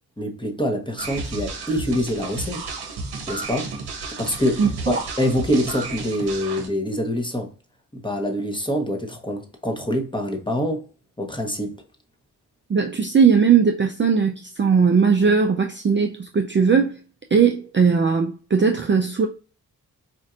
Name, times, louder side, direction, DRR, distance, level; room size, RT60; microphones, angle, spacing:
voice 1, 0.2-2.7 3.3-3.7 4.2-4.6 4.9-7.5 7.9-10.9 11.2-11.8, equal, 10° left, 1.0 m, -25 dB
sound 1, 1.0-6.7, right 4 dB, 70° right, 0.8 m, -32 dB
voice 2, 4.6-5.0 12.7-17.0 17.3-19.3, right 6 dB, 30° right, 0.5 m, -19 dB
4.4 x 2.5 x 2.4 m
cardioid pair, 45°, 40 cm